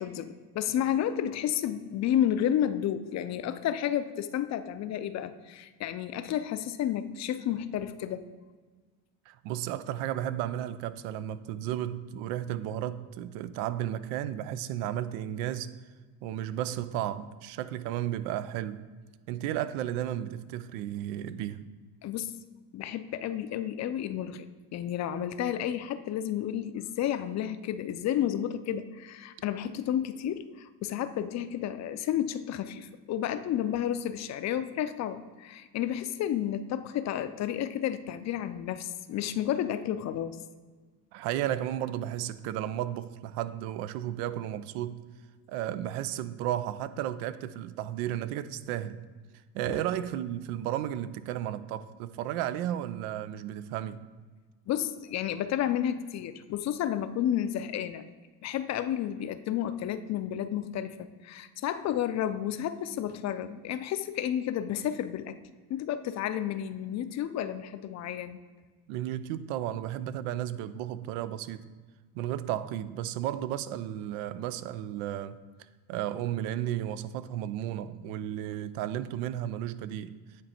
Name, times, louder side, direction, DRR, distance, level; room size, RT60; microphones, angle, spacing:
voice 1, 0.0-8.2 22.0-22.3 22.7-24.5 24.7-40.4 49.7-49.8 54.7-58.1 58.4-65.4 65.7-68.4, left 10 dB, 45° left, 0.4 m, -31 dB
voice 2, 9.3-15.7 16.2-18.8 19.3-21.6 41.1-45.0 45.5-49.0 49.5-54.0 68.9-71.6 72.1-75.4 75.9-80.2, right 12 dB, 90° right, 0.5 m, -33 dB
9.5 x 3.2 x 4.3 m
supercardioid pair, 105°, 39 cm